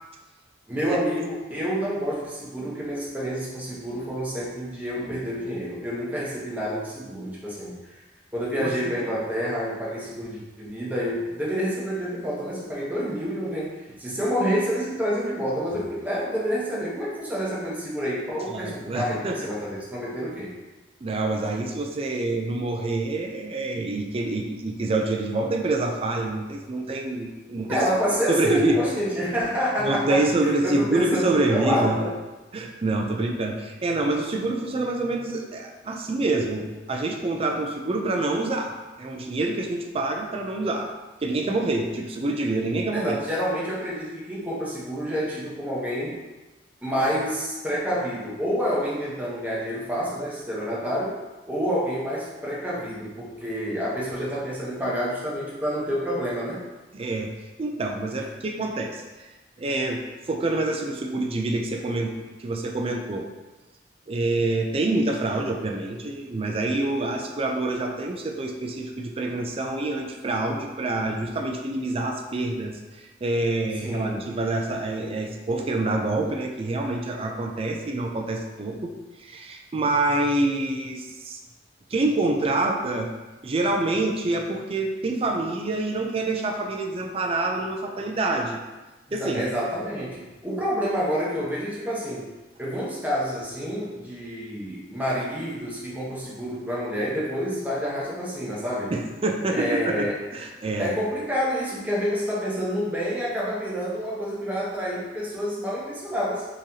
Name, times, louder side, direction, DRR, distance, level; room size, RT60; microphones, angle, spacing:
voice 1, 0.7-8.0 8.3-20.5 27.7-32.1 42.9-46.2 46.8-51.2 51.5-56.6 73.8-74.3 89.1-92.3 92.6-98.9 99.5-100.2 100.8-106.5, equal, 10° right, -6 dB, 0.9 m, -28 dB
voice 2, 8.6-9.1 18.5-19.5 21.0-27.9 28.3-28.8 29.8-32.0 32.5-40.9 41.2-43.2 56.9-57.3 57.6-59.0 59.6-63.3 64.1-81.4 81.9-83.1 83.4-88.6 89.1-89.4 98.9-100.9, right 2 dB, 30° right, 2 dB, 0.4 m, -26 dB
3.7 x 3.2 x 2.8 m, 1.2 s
head